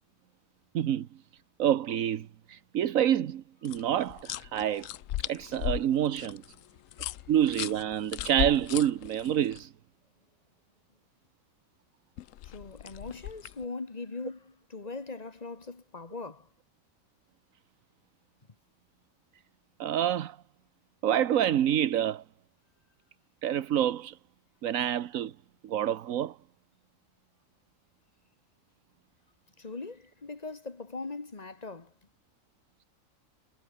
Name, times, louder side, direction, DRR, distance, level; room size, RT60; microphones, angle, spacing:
voice 1, 0.7-1.1 1.6-4.9 5.3-6.4 7.3-9.7 19.8-20.4 21.0-22.2 23.4-24.2 24.6-25.3 25.6-26.3, right 10 dB, 85° right, 1.3 m, -27 dB
sound 1, 3.6-9.6 12.2-13.6, left 13 dB, 75° left, 1.0 m, -37 dB
voice 2, 12.4-16.5 29.6-31.9, left 3 dB, 30° left, 1.8 m, -40 dB
omnidirectional pair, 1.4 m